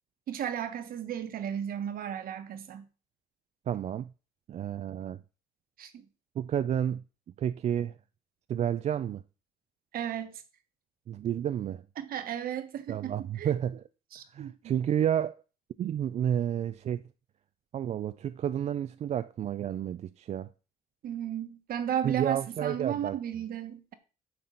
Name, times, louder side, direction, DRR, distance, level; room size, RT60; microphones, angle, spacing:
voice 1, 0.3-2.9 5.8-6.0 9.9-10.4 12.0-13.5 14.1-14.7 21.0-23.9, right 9 dB, 60° right, 1.3 m, -34 dB
voice 2, 3.7-4.1 4.5-5.2 6.4-7.0 7.4-8.0 8.5-9.2 11.1-11.8 12.9-13.8 14.3-15.3 15.8-17.0 17.7-20.5 22.0-23.2, right 10 dB, 40° right, 0.4 m, -30 dB
9.5 x 6.0 x 3.9 m
cardioid pair, 110°, 17 cm